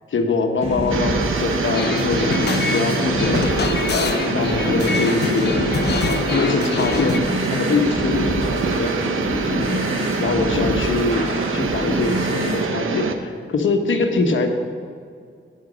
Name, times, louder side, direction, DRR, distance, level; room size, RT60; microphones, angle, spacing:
voice 1, 0.1-3.5 3.9-5.7 6.1-14.5, left 4 dB, 70° left, 4 dB, 1.2 m, -24 dB
sound 1, 0.6-12.6, equal, 35° right, 3.3 m, -27 dB
sound 2, 0.9-13.2, right 5 dB, 85° right, 0.9 m, -25 dB
sound 3, 1.7-7.2, left 6 dB, 55° left, 0.6 m, -25 dB
9.3 x 9.1 x 6.2 m, 2.2 s
wide cardioid pair, 165°, 20 cm